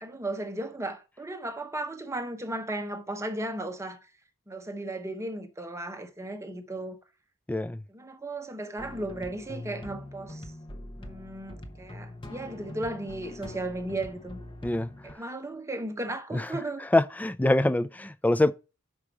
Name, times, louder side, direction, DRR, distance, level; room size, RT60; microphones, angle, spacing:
voice 1, 0.0-4.0 4.5-7.0 7.9-10.5 11.0-14.4 15.0-16.9, right 2 dB, 15° right, 0.8 m, -35 dB
voice 2, 7.5-7.8 14.6-14.9 16.3-16.4 16.9-18.5, left 1 dB, 5° left, 0.3 m, -24 dB
sound 1, 8.8-15.1, left 1 dB, 25° left, 0.9 m, -43 dB
6.1 x 5.1 x 6.0 m
head